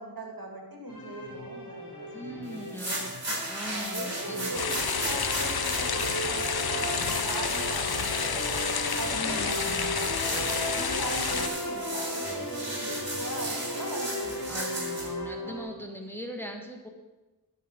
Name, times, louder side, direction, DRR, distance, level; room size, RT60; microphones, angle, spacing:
voice 1, 0.0-2.9 3.6-8.3 8.9-14.6, right 2 dB, 65° right, 1 dB, 2.0 m, -40 dB
sound 1, 0.9-15.6, equal, 60° left, 3.2 m, -36 dB
voice 2, 2.1-3.1 3.5-4.7 9.1-10.0 11.4-11.5 14.5-16.9, equal, 5° left, 2 dB, 1.3 m, -40 dB
sound 2, 2.6-15.1, right 1 dB, 45° right, 3.4 m, -36 dB
sound 3, 4.5-11.5, left 6 dB, 75° left, 0.7 m, -30 dB
12.0 x 5.7 x 5.1 m, 1.2 s
wide cardioid pair, 40°, 38 cm